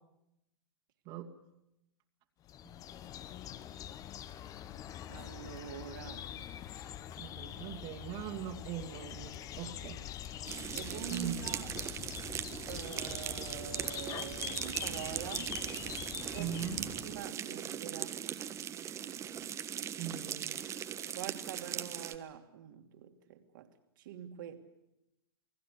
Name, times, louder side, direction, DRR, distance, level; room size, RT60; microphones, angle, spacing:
sound 1, 2.5-17.3, left 11 dB, 25° left, 1.2 m, -44 dB
voice 1, 5.1-6.5 10.7-11.7 12.7-15.6 16.3-16.5 17.0-18.2 21.1-23.7 24.0-24.7, right 10 dB, 55° right, 2.8 m, -45 dB
voice 2, 7.2-10.0 11.1-11.5 16.4-16.9 20.0-20.6, right 9 dB, 40° right, 2.6 m, -41 dB
sound 2, 10.4-22.1, right 9 dB, 20° right, 1.4 m, -39 dB
28.5 x 20.0 x 8.4 m
figure-of-eight pair, 110°, 13 cm